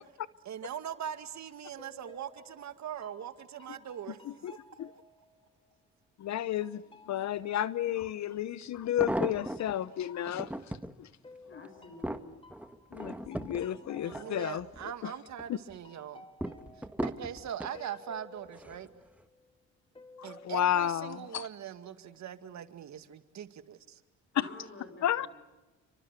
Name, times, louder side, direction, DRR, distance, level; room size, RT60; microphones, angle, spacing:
voice 1, 0.5-4.2 14.0-16.3 16.8-18.9 20.2-24.0, right 9 dB, 65° right, 2.1 m, -41 dB
sound 1, 1.8-6.1 6.6-10.8 11.2-15.5 15.8-19.6 19.9-20.6, left 2 dB, 15° left, 3.2 m, -56 dB
voice 2, 6.2-11.1 11.5-11.6 12.9-15.2 15.5-15.6 20.2-21.5 24.4-24.5 25.0-25.3, left 11 dB, 65° left, 0.9 m, -32 dB
sound 2, 8.0-8.1 8.7-9.8 10.3-10.9 11.5-14.9 15.3-15.8 16.4-17.8 18.5-18.9 19.2-19.3, right 1 dB, 5° right, 1.6 m, -37 dB
voice 3, 11.5-12.3 24.3-25.3, left 2 dB, 40° left, 7.1 m, -49 dB
30.0 x 24.5 x 8.2 m
cardioid pair, 90°, 30 cm